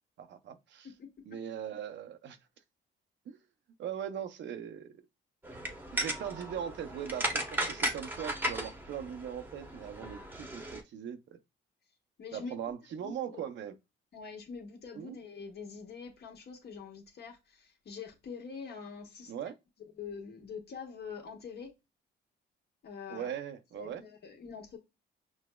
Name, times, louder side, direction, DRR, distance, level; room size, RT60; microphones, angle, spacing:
voice 1, 0.2-0.9 1.3-2.4 3.3-3.4 3.8-5.0 5.9-11.4 12.3-13.7 15.0-15.2 19.3-19.6 23.1-24.0, right 9 dB, 65° right, 0.6 m, -40 dB
sound 1, 5.4-10.8, right 1 dB, 10° right, 0.8 m, -36 dB
voice 2, 12.2-12.6 13.0-13.4 14.1-19.3 20.0-21.7 22.8-23.3 23.7-24.8, left 5 dB, 55° left, 1.3 m, -44 dB
6.0 x 2.0 x 2.2 m
cardioid pair, 90°, 20 cm